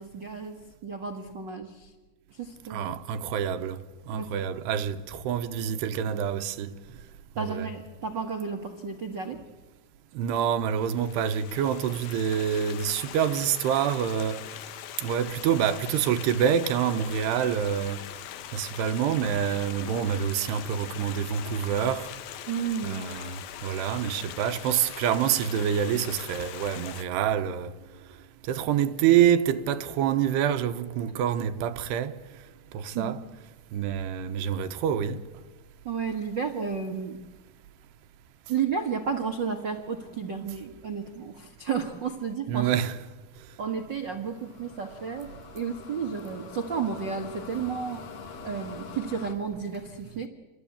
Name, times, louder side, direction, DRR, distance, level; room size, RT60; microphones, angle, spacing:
voice 1, 0.0-1.9 2.3-2.9 4.1-4.4 7.3-9.4 22.5-23.1 32.9-33.2 35.8-37.2 38.5-42.7 43.6-45.3 45.5-48.0 48.4-50.3, right 6 dB, 65° right, 1.0 m, -32 dB
voice 2, 2.7-6.7 7.4-7.7 10.1-14.5 15.0-18.0 18.5-22.1 22.8-27.7 28.5-32.2 32.7-33.2 33.7-35.2 42.5-43.0, right 9 dB, 90° right, 3.1 m, -27 dB
Stream, 10.7-27.0, left 12 dB, 70° left, 2.6 m, -42 dB
sound 1, 44.2-49.3, left 5 dB, 55° left, 2.0 m, -44 dB
28.0 x 21.5 x 8.6 m
omnidirectional pair, 4.7 m